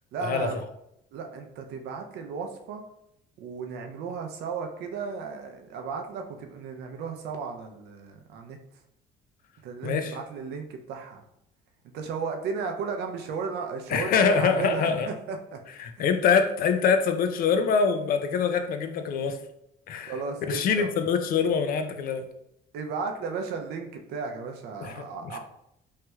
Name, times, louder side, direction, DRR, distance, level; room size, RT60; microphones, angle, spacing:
voice 1, 0.1-0.7 1.1-2.8 3.4-8.6 9.6-11.2 11.9-15.6 16.0-16.3 20.0-20.9 22.7-25.4, right 5 dB, 80° right, 4 dB, 0.5 m, -34 dB
voice 2, 9.8-10.2 13.9-15.1 15.8-19.4 19.9-20.1 20.5-22.3 24.8-25.4, left 6 dB, 60° left, 7 dB, 0.4 m, -24 dB
3.2 x 2.9 x 2.3 m, 0.77 s
cardioid pair, 110°, 17 cm